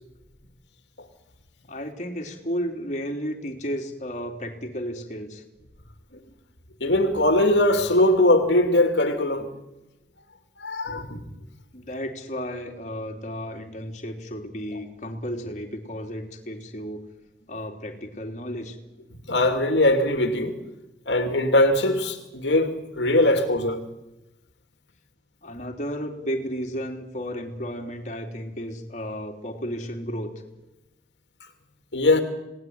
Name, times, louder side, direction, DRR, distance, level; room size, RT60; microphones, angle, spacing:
voice 1, 1.7-5.4 11.7-17.0 17.5-18.8 25.4-30.3, equal, 40° left, 3.4 m, -33 dB
voice 2, 6.8-9.5 10.6-11.2 19.3-20.5 21.1-23.8 31.9-32.2, left 1 dB, 85° left, 2.7 m, -21 dB
27.5 x 19.0 x 9.6 m
head